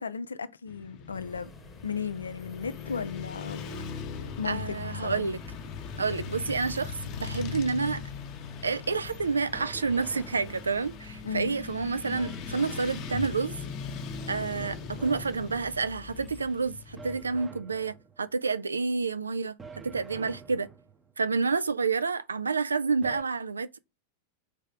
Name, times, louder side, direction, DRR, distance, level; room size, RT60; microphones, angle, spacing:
voice 1, 0.0-1.5 1.8-3.9 4.4-4.7 5.0-5.3 11.2-11.6, left 6 dB, 75° left, 0.4 m, -35 dB
Motorcycle / Traffic noise roadway noise, 0.7-17.3, left 6 dB, 40° left, 0.8 m, -40 dB
Praça (square), 1.1-16.5, left 1 dB, 5° left, 1.0 m, -52 dB
voice 2, 4.4-5.4 6.0-8.0 8.6-13.5 14.3-19.6 19.8-20.7 21.2-23.7, right 4 dB, 75° right, 0.3 m, -29 dB
sound 1, 9.5-11.1 12.1-13.7 14.6-15.9 17.0-18.3 19.6-21.1 23.0-23.2, right 5 dB, 20° right, 0.7 m, -47 dB
4.8 x 3.2 x 3.4 m
figure-of-eight pair, 90°, 0 cm